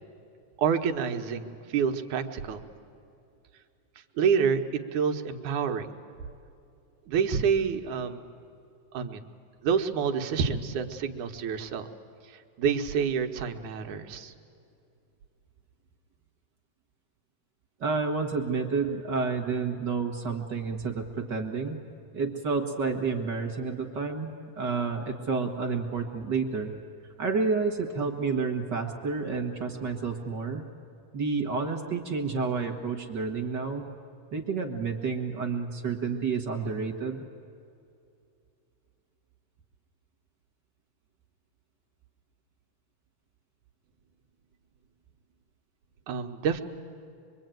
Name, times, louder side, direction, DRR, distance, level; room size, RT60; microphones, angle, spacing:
voice 1, 0.6-2.6 4.2-4.6 4.9-5.9 7.1-8.2 8.9-9.3 9.6-11.9 12.3-14.3 46.1-46.6, right 6 dB, 75° right, 5 dB, 2.6 m, -28 dB
voice 2, 17.8-21.8 22.1-26.7 27.2-30.6 31.1-33.8 34.3-37.3, right 4 dB, 45° right, 3 dB, 1.7 m, -30 dB
25.0 x 24.0 x 9.1 m, 2.6 s
omnidirectional pair, 3.5 m